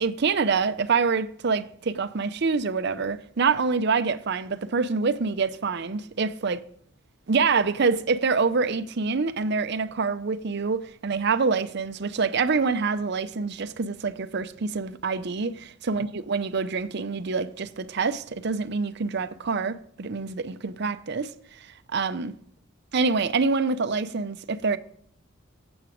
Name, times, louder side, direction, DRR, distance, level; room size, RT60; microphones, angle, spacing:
voice 1, 0.0-6.6 7.3-21.3 21.9-22.3 22.9-24.8, right 4 dB, 55° right, 0.6 m, -26 dB
9.1 x 8.0 x 5.0 m
head